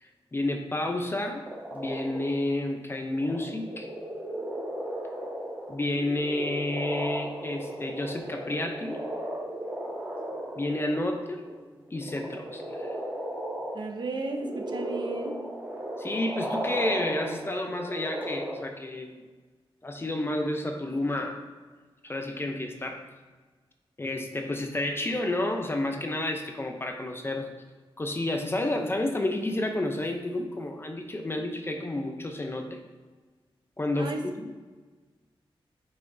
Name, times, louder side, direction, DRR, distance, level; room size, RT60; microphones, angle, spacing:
voice 1, 0.0-3.9 5.7-9.0 10.6-11.4 11.9-13.0 16.0-19.2 19.8-21.4 22.0-23.0 24.0-27.5 28.0-32.8 33.8-34.5, left 1 dB, 25° left, 4 dB, 0.6 m, -30 dB
sound 1, 1.5-2.3 3.1-11.0 11.4-11.6 11.9-18.6, right 1 dB, 20° right, 1.6 m, -35 dB
voice 2, 13.7-15.4 34.0-34.2, right 3 dB, 50° right, 4 dB, 0.7 m, -34 dB
7.6 x 5.7 x 2.7 m, 1.4 s
wide cardioid pair, 155°, 10 cm